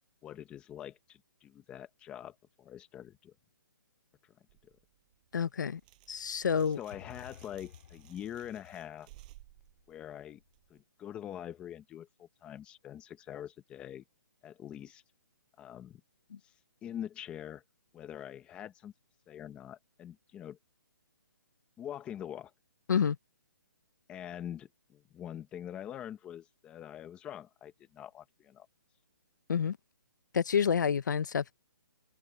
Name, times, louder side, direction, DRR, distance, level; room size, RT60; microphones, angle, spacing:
voice 1, 0.2-3.3 4.2-4.3 6.8-9.1 9.9-10.4 10.7-14.0 14.4-15.0 15.6-16.0 16.4-16.5 16.8-17.6 17.9-18.9 19.3-20.6 21.8-22.5 24.1-28.7, left 10 dB, 10° left, 1.1 m, -44 dB
sound 1, 4.5-10.8, right 20 dB, 25° right, 7.4 m, -59 dB
voice 2, 5.3-5.8 6.1-6.8 22.9-23.2 29.5-29.8 30.3-31.5, left 7 dB, 60° left, 1.0 m, -28 dB
sound 2, 6.9-10.6, left 10 dB, 40° left, 3.7 m, -55 dB
hypercardioid pair, 170°, 11 cm